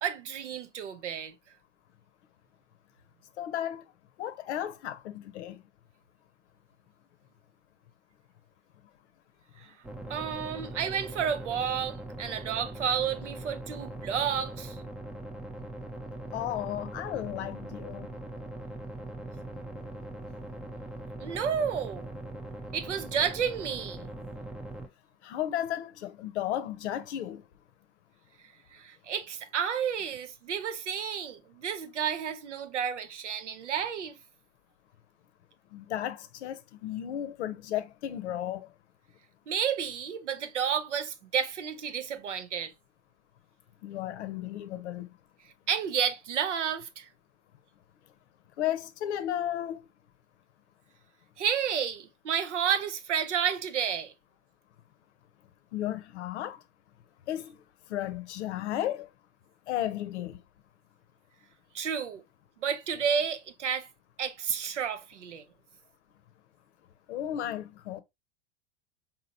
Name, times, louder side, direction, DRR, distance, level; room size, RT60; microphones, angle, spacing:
voice 1, 0.0-1.3 10.1-14.8 21.2-22.1 22.7-24.1 28.7-34.2 39.5-42.7 45.7-47.1 51.4-54.1 61.7-62.2 62.6-63.9 64.2-65.4, right 8 dB, 90° right, 0.6 m, -31 dB
voice 2, 3.4-3.8 4.2-5.6 16.3-18.1 25.2-27.4 35.7-38.7 43.8-45.1 48.6-49.8 55.7-56.6 57.3-57.6 57.9-59.1 59.7-60.4 67.1-68.0, left 12 dB, 75° left, 0.6 m, -34 dB
sound 1, 9.8-24.9, right 1 dB, 5° right, 0.4 m, -41 dB
3.9 x 2.8 x 2.6 m
hypercardioid pair, 95°, 35 cm